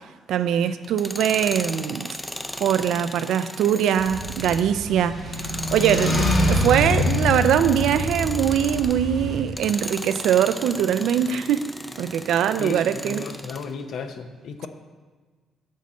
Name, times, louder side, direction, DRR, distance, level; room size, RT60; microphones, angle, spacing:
voice 1, 0.3-2.2 2.6-11.7 12.0-13.3, right 9 dB, 80° right, 11 dB, 0.3 m, -22 dB
Tools, 0.8-9.0 9.5-13.7, equal, 5° left, 0.4 m, -36 dB
sound 1, 4.0-9.4, left 1 dB, 45° left, 1.3 m, -25 dB
voice 2, 12.6-14.7, left 5 dB, 70° left, 7 dB, 0.6 m, -34 dB
6.4 x 6.1 x 4.1 m, 1.3 s
cardioid pair, 90°, 0 cm